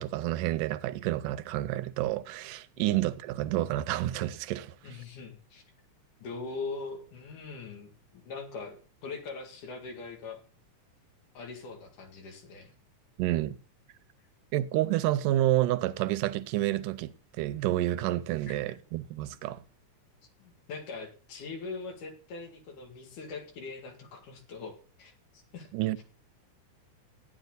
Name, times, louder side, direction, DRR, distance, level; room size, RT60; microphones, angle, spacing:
voice 1, 0.0-4.7 13.2-13.6 14.5-19.6 25.7-26.0, right 15 dB, 90° right, 2.3 m, -29 dB
voice 2, 4.8-5.6 6.2-8.8 9.0-10.4 11.4-12.7 18.5-18.6 20.4-25.7 26.0-26.1, left 4 dB, 70° left, 3.6 m, -41 dB
14.0 x 10.0 x 3.9 m
omnidirectional pair, 3.7 m